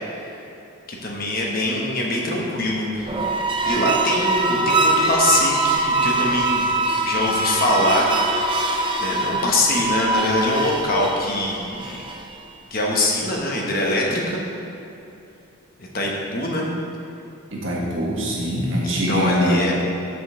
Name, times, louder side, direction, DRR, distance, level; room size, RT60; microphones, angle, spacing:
voice 1, 0.9-3.2 3.6-6.6 7.0-8.0 8.4-8.6 9.0-12.1 12.7-14.4 15.8-16.7 18.8-19.7, left 1 dB, 40° left, -2 dB, 1.1 m, -23 dB
sound 1, 3.0-12.4, right 2 dB, 20° right, 0.4 m, -23 dB
voice 2, 17.5-19.7, equal, 60° right, -4 dB, 1.6 m, -23 dB
6.2 x 5.2 x 6.3 m, 2.8 s
head